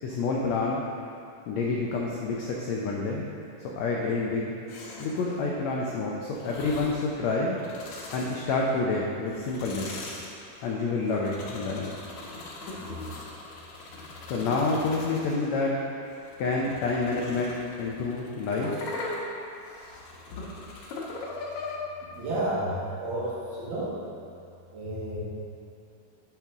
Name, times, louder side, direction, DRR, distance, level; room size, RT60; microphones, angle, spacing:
voice 1, 0.0-0.8 1.5-3.3 3.8-4.5 5.0-7.6 8.1-9.9 10.6-11.9 14.3-15.9 16.4-18.8, left 3 dB, 90° left, -2 dB, 1.5 m, -28 dB
sound 1, 4.7-5.3 6.3-7.1 7.5-8.8 9.3-15.5 16.1-21.8, left 2 dB, 65° left, 2.1 m, -40 dB
voice 2, 22.1-24.0 24.7-25.2, right 1 dB, 70° right, -8 dB, 3.3 m, -31 dB
8.8 x 5.9 x 3.6 m, 2.5 s
omnidirectional pair, 4.0 m